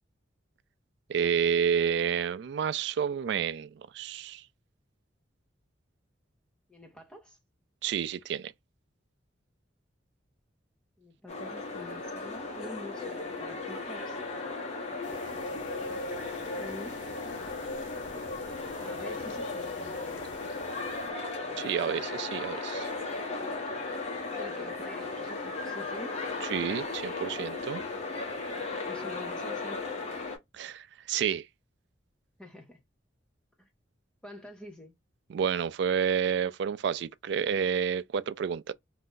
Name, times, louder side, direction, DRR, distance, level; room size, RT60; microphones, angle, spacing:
voice 1, 1.1-4.5 7.8-8.5 21.6-22.9 26.4-27.8 30.5-31.5 35.3-38.7, right 7 dB, 65° right, 0.3 m, -30 dB
voice 2, 6.7-7.4 11.0-14.2 16.5-17.0 18.8-20.2 24.4-26.2 28.8-30.0 32.4-32.8 33.6-33.7 34.2-34.9, left 1 dB, 5° left, 0.7 m, -46 dB
sound 1, 11.3-30.4, left 3 dB, 35° left, 1.1 m, -36 dB
sound 2, 15.0-21.1, left 2 dB, 65° left, 0.4 m, -41 dB
2.6 x 2.3 x 3.6 m
head